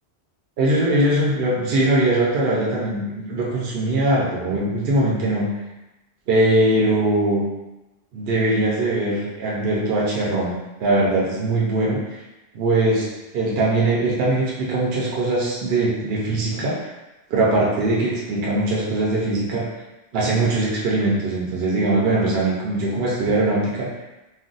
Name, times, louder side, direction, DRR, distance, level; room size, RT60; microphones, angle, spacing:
voice 1, 0.6-5.5 6.3-7.5 8.1-10.5 10.8-12.2 12.5-13.1 13.3-16.8 17.3-19.7 20.1-23.9, right 2 dB, 70° right, -4 dB, 0.8 m, -21 dB
2.4 x 2.1 x 3.8 m, 1.0 s
omnidirectional pair, 1.1 m